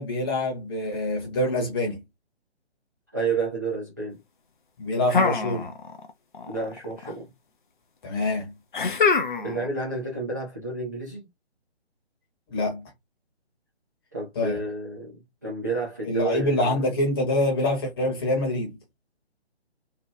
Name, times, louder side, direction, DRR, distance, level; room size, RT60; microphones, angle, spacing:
voice 1, 0.0-2.0 4.8-5.7 8.0-8.5 12.5-12.8 14.3-14.7 16.0-18.8, left 1 dB, 20° left, 0.9 m, -25 dB
voice 2, 3.1-4.2 6.5-7.3 9.4-11.2 14.1-15.1 15.4-16.8, right 3 dB, 20° right, 0.4 m, -30 dB
sound 1, 5.1-6.1 6.3-7.1 8.7-9.7, left 4 dB, 50° left, 0.5 m, -24 dB
2.8 x 2.1 x 3.4 m
figure-of-eight pair, 145°, 33 cm